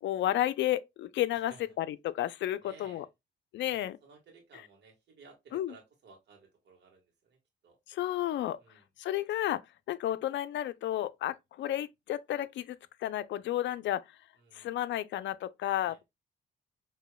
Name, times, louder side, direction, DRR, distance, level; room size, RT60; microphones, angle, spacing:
voice 1, 0.0-1.5 1.8-3.1 3.5-4.0 5.5-5.7 7.9-8.6 9.0-9.6 9.9-14.0 14.5-16.0, left 13 dB, 70° left, 0.4 m, -32 dB
voice 2, 1.3-1.6 2.6-3.1 3.7-7.4 7.6-7.8 8.6-8.9 14.4-14.7 15.8-16.0, right 4 dB, 60° right, 1.5 m, -57 dB
4.9 x 2.8 x 2.2 m
cardioid pair, 90°, 20 cm